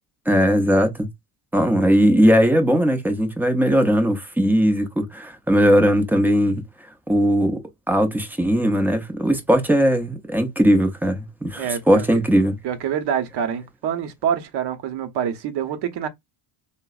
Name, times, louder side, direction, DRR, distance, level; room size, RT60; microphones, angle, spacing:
voice 1, 0.3-1.1 1.5-6.6 7.1-7.6 7.9-12.6, equal, 5° right, 0.4 m, -19 dB
voice 2, 11.6-12.0 12.6-16.1, right 8 dB, 55° right, 0.8 m, -26 dB
3.7 x 2.0 x 2.3 m
cardioid pair, 135°, 49 cm